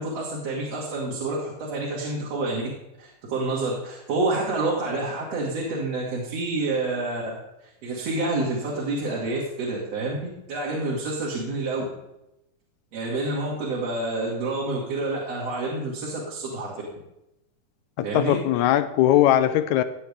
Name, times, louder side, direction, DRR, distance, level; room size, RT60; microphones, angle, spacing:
voice 1, 0.0-2.6 3.0-7.4 7.8-10.2 10.5-11.8 12.9-16.7 18.0-18.4, right 2 dB, 55° right, -5 dB, 3.1 m, -28 dB
voice 2, 18.0-19.8, left 12 dB, 75° left, 12 dB, 1.8 m, -20 dB
16.5 x 9.3 x 3.6 m, 0.87 s
omnidirectional pair, 3.7 m